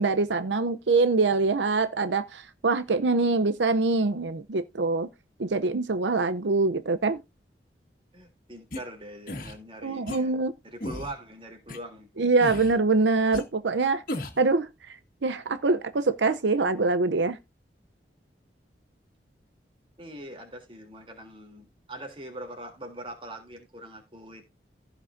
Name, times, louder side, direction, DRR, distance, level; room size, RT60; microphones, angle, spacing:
voice 1, 0.0-5.1 5.4-7.2 9.8-10.5 12.2-14.0 14.4-17.4, right 3 dB, 85° right, 0.7 m, -24 dB
voice 2, 8.1-10.3 10.6-12.2 20.0-24.4, right 1 dB, 30° right, 3.2 m, -42 dB
sound 1, 8.7-8.8 9.3-9.5 10.1-10.2 10.8-11.1 11.7-11.8 12.4-12.8 13.3-13.4 14.1-14.4, left 1 dB, 50° left, 1.9 m, -34 dB
15.5 x 6.0 x 2.6 m
head